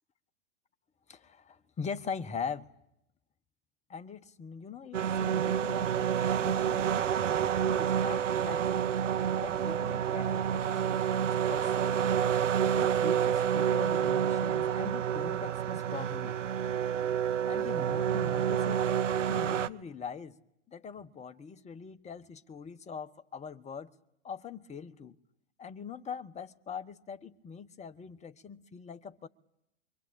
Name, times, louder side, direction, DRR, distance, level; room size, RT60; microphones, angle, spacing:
voice 1, 1.1-2.7 3.9-6.9 7.6-9.0 9.4-12.0 12.6-16.4 17.5-18.9 19.3-20.4 20.7-23.9 24.2-25.2 25.6-29.3, left 6 dB, 20° left, 1.2 m, -42 dB
sound 1, 4.9-19.7, right 8 dB, 80° right, 1.0 m, -29 dB
28.5 x 23.0 x 8.6 m
hypercardioid pair, 100°, 37 cm